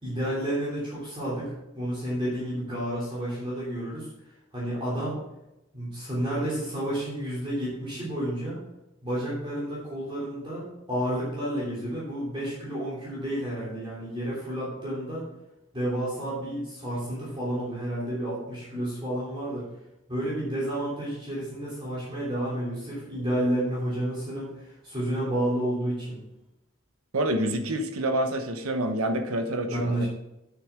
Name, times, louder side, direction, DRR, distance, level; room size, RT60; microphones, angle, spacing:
voice 1, 0.0-4.1 4.5-5.2 5.7-8.6 9.0-15.2 15.7-19.6 20.1-26.2 29.7-30.1, right 1 dB, 25° right, -8 dB, 3.1 m, -30 dB
voice 2, 27.1-30.1, right 1 dB, 85° right, 6 dB, 1.1 m, -27 dB
9.1 x 6.9 x 3.7 m, 0.91 s
head